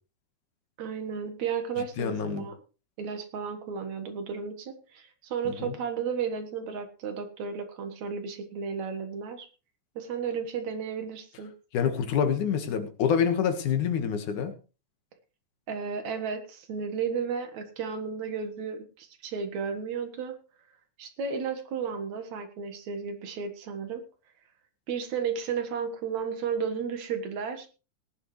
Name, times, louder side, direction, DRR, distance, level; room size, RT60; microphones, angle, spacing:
voice 1, 0.8-2.5 3.0-9.5 10.0-11.5 15.7-20.4 21.0-24.0 24.9-27.7, right 6 dB, 65° right, 8 dB, 2.7 m, -33 dB
voice 2, 2.0-2.5 5.5-5.7 11.7-14.5, left 7 dB, 70° left, 7 dB, 2.9 m, -27 dB
19.0 x 10.5 x 3.2 m, 0.33 s
omnidirectional pair, 3.7 m